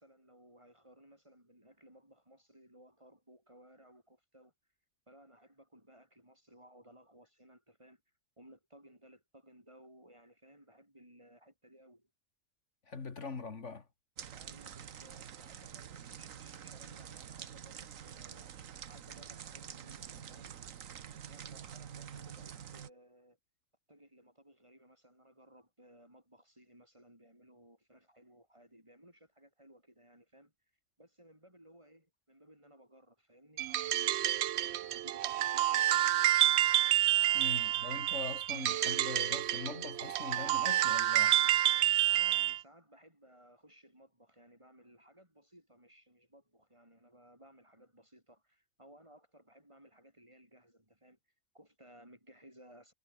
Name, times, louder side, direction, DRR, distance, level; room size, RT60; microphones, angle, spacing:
voice 1, 0.0-4.5 5.1-8.0 8.4-12.1 14.3-20.6 21.3-23.4 23.9-30.5 31.0-36.1 42.1-51.2 51.5-52.9, equal, 20° right, 7.7 m, -60 dB
voice 2, 12.9-13.9 37.3-41.4, left 4 dB, 65° left, 2.3 m, -42 dB
sound 1, 14.2-22.9, right 8 dB, 85° right, 1.5 m, -47 dB
sound 2, 33.6-42.6, right 13 dB, 65° right, 0.8 m, -29 dB
omnidirectional pair, 1.3 m